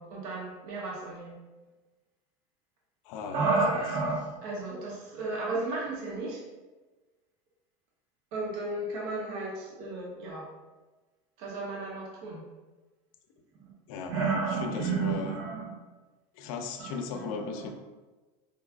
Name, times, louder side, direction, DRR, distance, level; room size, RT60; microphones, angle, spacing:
voice 1, 0.0-1.4 3.3-6.4 8.3-10.5 11.4-12.4 14.1-15.7 16.8-17.7, right 3 dB, 55° right, -3 dB, 0.8 m, -32 dB
voice 2, 3.0-3.4 3.7-3.8 13.9-15.4 16.3-17.7, left 5 dB, 75° left, 5 dB, 0.5 m, -37 dB
4.7 x 2.3 x 2.4 m, 1.2 s
supercardioid pair, 145°, 18 cm